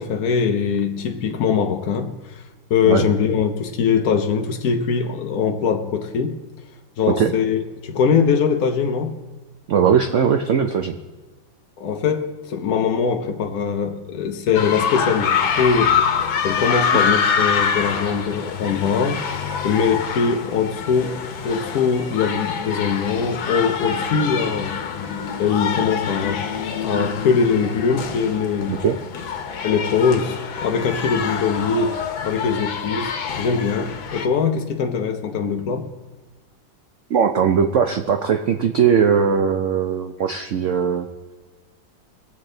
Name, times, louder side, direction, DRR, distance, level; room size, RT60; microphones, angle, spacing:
voice 1, 0.0-2.4 2.7-6.4 7.0-9.2 11.8-19.2 19.6-24.8 25.4-26.5 26.8-28.8 29.6-35.9, left 6 dB, 60° left, 1.0 m, -22 dB
voice 2, 9.7-11.0 28.7-29.0 37.1-41.1, right 7 dB, 85° right, 0.6 m, -19 dB
sound 1, 14.5-34.3, left 7 dB, 90° left, 1.7 m, -25 dB
21.5 x 8.2 x 3.9 m
omnidirectional pair, 2.1 m